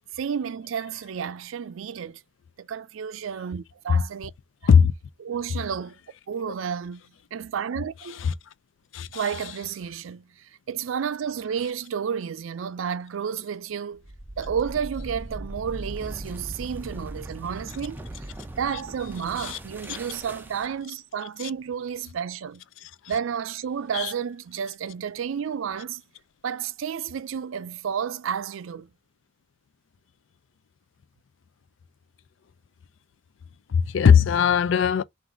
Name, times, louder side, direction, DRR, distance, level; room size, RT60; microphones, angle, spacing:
voice 1, 0.1-2.2 2.6-4.3 5.2-6.0 6.3-7.0 7.3-8.2 9.1-14.0 14.4-18.3 18.6-22.6 23.1-26.0 26.4-28.9, right 7 dB, 85° right, 0.4 m, -31 dB
sound 1, 14.0-20.8, right 1 dB, 10° right, 0.4 m, -39 dB
voice 2, 33.7-35.0, left 7 dB, 70° left, 0.4 m, -18 dB
3.8 x 2.5 x 4.4 m
head